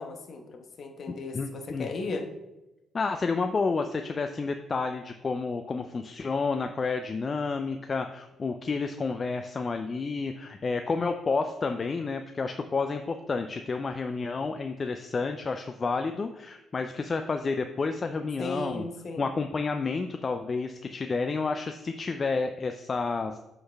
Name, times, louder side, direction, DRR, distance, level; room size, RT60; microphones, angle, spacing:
voice 1, 0.0-2.2 18.4-19.3, left 3 dB, 55° left, 4 dB, 1.0 m, -36 dB
voice 2, 1.3-1.9 2.9-18.9 19.2-23.4, left 4 dB, 40° left, 6 dB, 0.4 m, -30 dB
7.8 x 3.9 x 3.4 m, 0.97 s
supercardioid pair, 65°, 0 cm